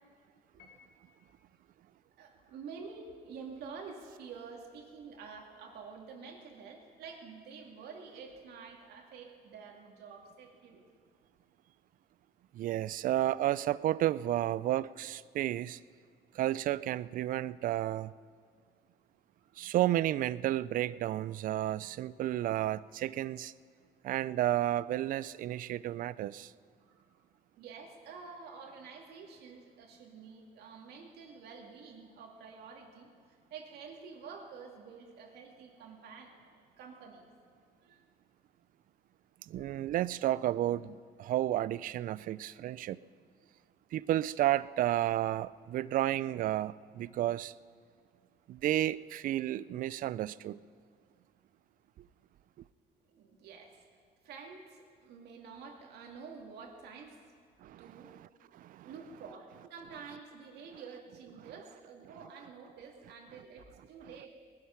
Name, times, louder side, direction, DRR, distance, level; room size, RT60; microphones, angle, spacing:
Piano, 0.6-1.5, left 6 dB, 80° left, 2.2 m, -61 dB
voice 1, 2.0-10.9 19.4-19.5 26.8-27.1 27.5-33.1 33.5-37.3 37.8-38.0 39.5-39.6 53.0-53.8 54.2-57.2 57.8-58.2 58.8-64.4, right 5 dB, 75° right, 2 dB, 2.4 m, -49 dB
voice 2, 12.5-15.8 16.3-18.1 19.6-23.5 24.0-26.5 39.5-43.0 43.9-47.5 48.5-50.6 57.6-57.9 58.5-58.9, right 13 dB, 55° right, 19 dB, 0.4 m, -32 dB
19.0 x 11.5 x 5.8 m, 2.1 s
cardioid pair, 110°, 17 cm